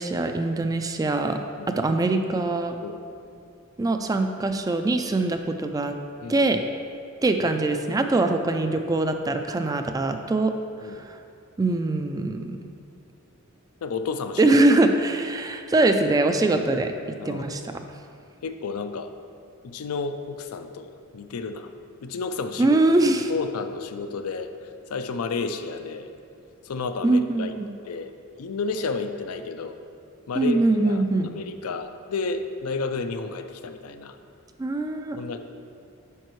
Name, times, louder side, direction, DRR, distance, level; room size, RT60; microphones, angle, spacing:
voice 1, 0.0-1.4 1.8-2.8 3.8-5.9 6.3-6.6 7.2-10.5 11.0-11.1 11.6-12.6 14.4-16.9 17.3-17.7 22.6-23.3 27.0-27.7 30.4-31.3 34.6-35.2, right 2 dB, 15° right, 6 dB, 0.3 m, -22 dB
voice 2, 13.8-14.5 17.2-17.6 18.4-19.1 19.6-21.7 22.0-22.8 23.3-26.1 26.6-27.5 27.8-28.1 28.4-29.8 30.3-31.0 31.3-34.2 35.2-35.4, left 4 dB, 80° left, 8 dB, 0.4 m, -31 dB
9.0 x 5.4 x 3.1 m, 2.4 s
head